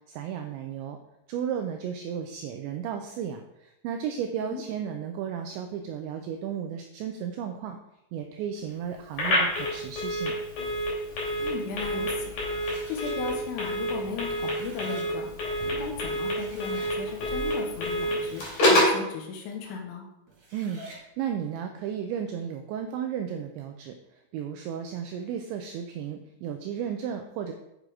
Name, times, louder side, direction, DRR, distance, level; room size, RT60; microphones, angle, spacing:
voice 1, 0.1-1.0 1.3-7.8 8.1-10.4 20.5-27.5, right 8 dB, 85° right, 5 dB, 2.6 m, -34 dB
Telephone, 9.1-19.0, equal, 45° left, 4.1 m, -28 dB
voice 2, 11.4-12.5 12.9-15.3 15.7-18.4 18.7-20.1, left 5 dB, 80° left, 2 dB, 3.7 m, -36 dB
sound 1, 12.5-13.1 14.2-15.1 15.9-16.0 16.2-16.9 18.0-18.8 20.3-21.0, right 2 dB, 45° right, 4.3 m, -47 dB
9.1 x 6.6 x 4.8 m, 0.85 s
omnidirectional pair, 5.9 m